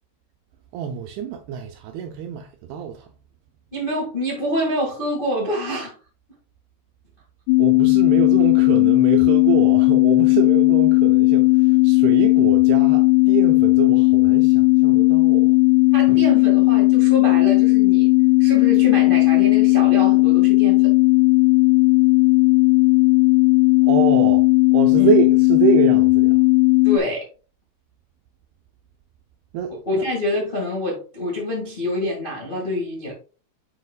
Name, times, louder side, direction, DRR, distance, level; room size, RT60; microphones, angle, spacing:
voice 1, 0.7-3.1 7.6-15.6 23.8-24.5 24.7-26.4 29.5-30.1, right 7 dB, 80° right, 2.3 m, -25 dB
voice 2, 3.7-5.9 15.9-18.1 18.4-20.9 25.0-25.1 26.8-27.3 29.8-33.1, left 1 dB, 65° left, 0.5 m, -26 dB
sound 1, 7.5-27.0, left 26 dB, 80° left, 2.4 m, -15 dB
8.6 x 5.1 x 2.4 m
omnidirectional pair, 5.1 m